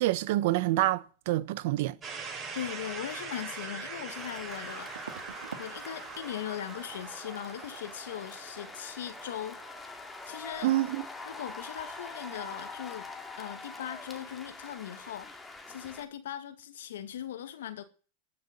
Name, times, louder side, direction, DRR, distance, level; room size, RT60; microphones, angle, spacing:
voice 1, 0.0-2.0 10.6-11.0, right 16 dB, 60° right, 1.0 m, -27 dB
Boom Drop, 2.0-11.9, right 5 dB, 25° right, 6.7 m, -43 dB
voice 2, 2.5-4.9 5.6-9.6 10.3-10.7 11.3-13.1 13.4-15.3 15.7-17.8, left 10 dB, 75° left, 2.0 m, -39 dB
sound 1, 4.1-16.1, left 3 dB, 10° left, 2.5 m, -45 dB
sound 2, 4.9-5.7 6.0-6.4 6.7-6.9 9.8-9.9 10.2-10.4 10.7-10.8, right 6 dB, 90° right, 1.8 m, -46 dB
13.0 x 6.9 x 9.7 m
hypercardioid pair, 110°, 0 cm